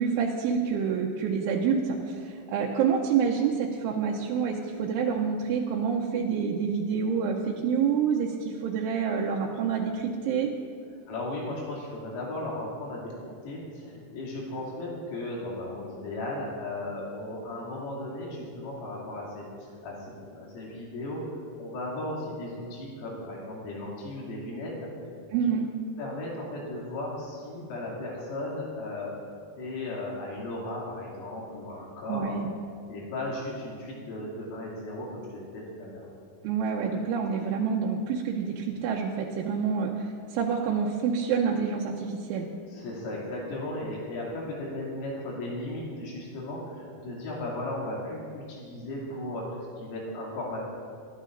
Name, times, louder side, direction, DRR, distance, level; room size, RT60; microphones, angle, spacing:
voice 1, 0.0-10.5 25.3-25.7 32.1-32.5 36.4-42.5, right 6 dB, 80° right, -1 dB, 3.1 m, -27 dB
voice 2, 11.1-25.1 26.0-29.2 29.6-32.3 32.9-36.1 42.7-50.6, left 1 dB, 85° left, -5 dB, 5.3 m, -36 dB
23.0 x 11.5 x 2.6 m, 2.3 s
omnidirectional pair, 5.7 m